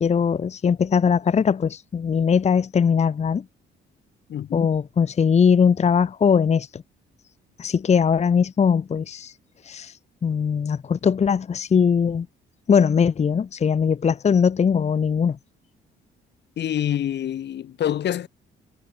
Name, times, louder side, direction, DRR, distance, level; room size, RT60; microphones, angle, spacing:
voice 1, 0.0-3.4 4.5-6.8 7.6-9.3 9.6-9.9 10.2-12.3 12.7-15.4, left 6 dB, 35° left, 0.7 m, -20 dB
voice 2, 4.3-4.8 16.6-18.3, left 10 dB, 60° left, 1.1 m, -26 dB
cardioid pair, 90°, 20 cm